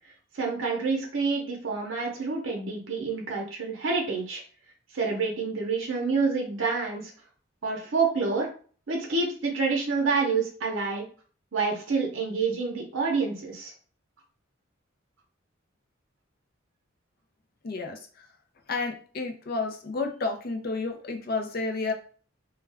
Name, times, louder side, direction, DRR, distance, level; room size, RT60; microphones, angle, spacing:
voice 1, 0.3-4.4 4.9-7.1 7.6-8.5 8.9-11.0 11.5-13.7, right 4 dB, 80° right, 0 dB, 0.6 m, -28 dB
voice 2, 17.6-18.0 18.7-21.9, left 3 dB, 50° left, 4 dB, 0.4 m, -31 dB
2.3 x 2.1 x 3.3 m, 0.42 s
head